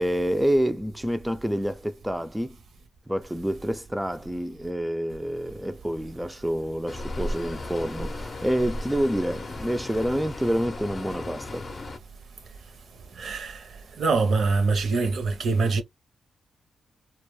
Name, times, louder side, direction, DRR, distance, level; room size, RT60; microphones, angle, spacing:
voice 1, 0.0-2.6 3.1-11.7, equal, 5° right, 0.3 m, -27 dB
sound 1, 6.9-12.0, left 1 dB, 45° left, 0.6 m, -35 dB
voice 2, 13.2-13.6 14.0-15.8, right 4 dB, 70° right, 0.5 m, -24 dB
2.2 x 2.1 x 3.0 m
cardioid pair, 70°, 0 cm